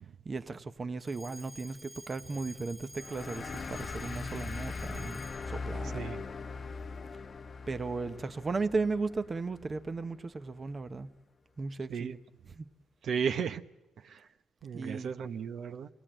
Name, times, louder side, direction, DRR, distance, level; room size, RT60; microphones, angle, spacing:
voice 1, 0.2-5.2 5.5-6.0 7.7-11.1 11.6-12.1 12.5-12.7 14.7-15.1, right 3 dB, 30° right, 11 dB, 0.8 m, -36 dB
Alarm, 1.0-5.6, equal, ahead, 1.7 m, -51 dB
sound 1, 3.0-10.1, left 4 dB, 40° left, 0.8 m, -40 dB
voice 2, 13.0-13.6 14.0-14.3 14.6-15.9, right 7 dB, 65° right, 8 dB, 0.8 m, -34 dB
26.5 x 17.5 x 8.9 m, 1.1 s
cardioid pair, 90°, 0 cm